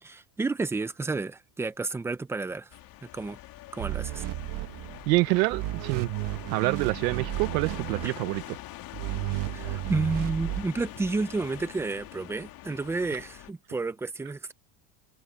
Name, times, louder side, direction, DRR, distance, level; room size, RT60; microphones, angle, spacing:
voice 1, 0.0-2.7 3.1-3.4 3.7-4.2 8.0-8.1 9.5-14.5, right 3 dB, 5° right, 0.5 m, -31 dB
sound 1, 2.7-13.5, left 15 dB, 45° left, 2.5 m, -44 dB
sound 2, 3.8-5.2 5.5-8.4 8.9-10.6, right 17 dB, 40° right, 1.0 m, -33 dB
voice 2, 5.1-6.1 6.5-8.4, right 23 dB, 75° right, 1.1 m, -26 dB
cardioid pair, 155°, 49 cm